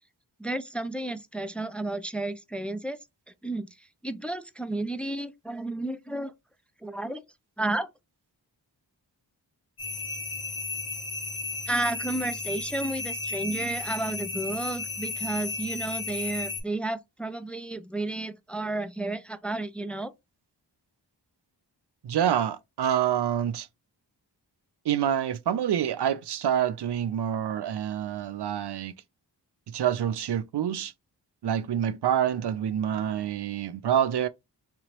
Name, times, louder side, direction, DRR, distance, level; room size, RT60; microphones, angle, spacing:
voice 1, 0.4-3.0 3.4-6.3 6.8-7.2 7.6-7.9 11.7-20.1, right 2 dB, 5° left, 0.5 m, -32 dB
sound 1, 9.8-16.6, left 4 dB, 55° left, 2.1 m, -34 dB
voice 2, 22.0-23.7 24.9-28.9 29.7-30.9 31.4-34.3, right 9 dB, 65° right, 0.5 m, -27 dB
3.8 x 3.0 x 2.9 m
cardioid pair, 45°, 44 cm